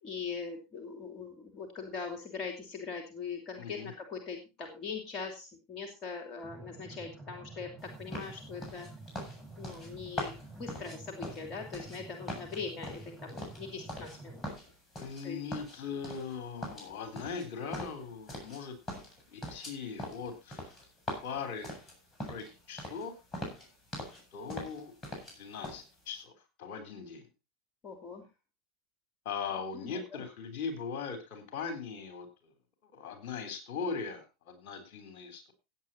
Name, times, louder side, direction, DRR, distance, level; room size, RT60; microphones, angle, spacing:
voice 1, 0.0-8.9 9.6-14.4 15.2-15.4 27.8-28.3 29.8-30.2, left 5 dB, 40° left, 4 dB, 2.8 m, -41 dB
voice 2, 3.6-3.9 15.0-18.8 19.3-20.7 21.2-21.7 22.3-23.1 24.3-24.9 25.4-26.3 26.6-27.3 29.3-32.5 32.8-35.5, left 5 dB, 55° left, 8 dB, 3.6 m, -40 dB
sound 1, 6.4-14.4, right 3 dB, ahead, 5.1 m, -49 dB
sound 2, 8.1-12.0 12.3-14.2 14.4-15.2 15.5-16.4 16.6-18.6 18.9-22.5 22.8-23.1 23.3-24.2 24.5-25.4 25.6-25.8, left 1 dB, 20° left, 7.5 m, -41 dB
16.0 x 8.7 x 4.1 m, 0.29 s
figure-of-eight pair, 80°, 0 cm